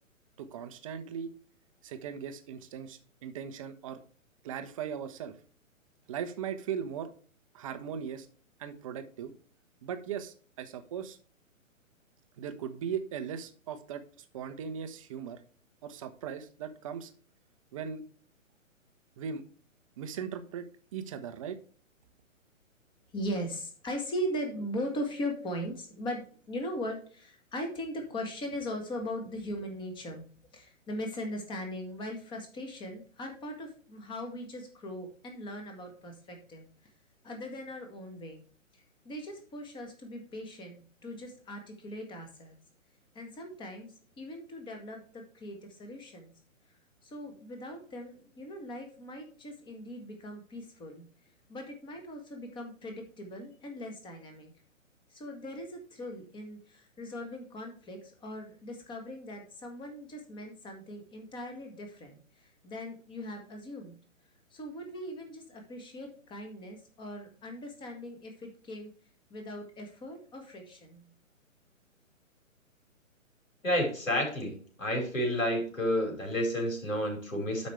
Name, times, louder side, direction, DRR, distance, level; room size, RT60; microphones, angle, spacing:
voice 1, 0.4-1.3 1.8-4.0 4.4-5.3 6.1-7.1 7.5-8.3 8.6-9.3 9.8-11.2 12.4-14.0 14.3-15.4 15.8-17.1 17.7-18.0 19.2-19.4 20.0-20.6 20.9-21.6, right 7 dB, 25° right, 9 dB, 0.8 m, -38 dB
voice 2, 23.1-30.2 30.5-36.6 37.2-38.5 39.0-42.6 43.1-46.3 47.0-51.0 51.5-54.5 55.1-62.2 62.6-63.9 64.5-68.9 69.3-71.1, equal, 10° left, 3 dB, 1.6 m, -39 dB
voice 3, 73.6-74.5 74.8-77.7, equal, 70° left, 1 dB, 4.7 m, -30 dB
12.0 x 5.2 x 3.3 m, 0.43 s
figure-of-eight pair, 125°, 41 cm